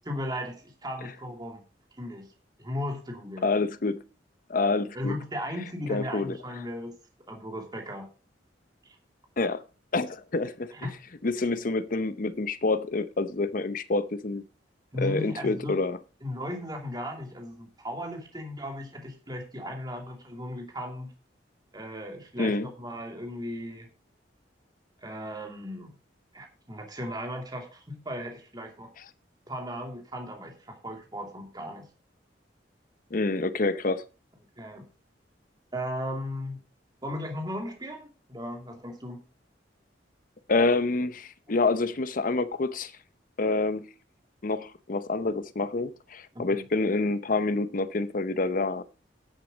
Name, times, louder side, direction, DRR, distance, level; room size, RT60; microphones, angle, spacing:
voice 1, 0.1-1.6 1.9-2.3 2.6-3.5 4.9-6.9 7.3-8.1 10.7-10.9 14.9-15.8 16.2-21.1 21.7-23.9 25.0-25.9 26.3-28.9 29.5-31.9 34.6-34.9 35.7-36.6 37.0-39.2 46.3-46.6, left 1 dB, 25° right, 2.6 m, -36 dB
voice 2, 3.4-4.0 4.5-5.1 5.9-6.4 9.4-9.6 9.9-10.9 11.2-14.4 15.0-16.0 22.4-22.7 33.1-34.0 40.5-42.9 43.4-43.9 44.4-48.8, left 3 dB, 50° left, 0.7 m, -27 dB
10.5 x 8.2 x 5.2 m
head